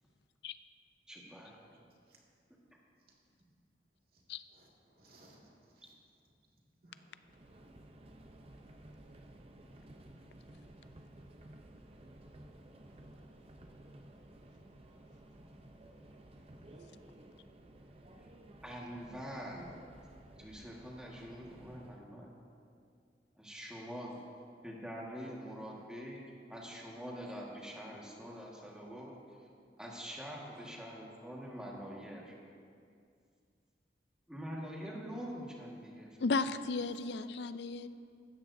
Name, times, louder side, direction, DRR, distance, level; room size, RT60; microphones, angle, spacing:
voice 1, 1.1-1.6 18.6-19.8 20.4-22.3 23.4-24.2 24.6-26.2 26.5-29.1 29.8-32.3 34.3-36.1, equal, 5° right, -3 dB, 1.6 m, -45 dB
voice 2, 4.5-5.9 6.8-7.3 19.2-19.4 19.7-19.9 24.3-24.6 25.7-25.9 30.8-31.0 36.9-37.0, right 1 dB, 55° right, -3 dB, 2.2 m, -64 dB
Subway metro underground, 7.2-22.1, right 1 dB, 35° right, 0.6 m, -55 dB
voice 3, 36.2-37.9, left 3 dB, 75° left, 12 dB, 0.4 m, -34 dB
16.0 x 13.0 x 2.7 m, 2.3 s
head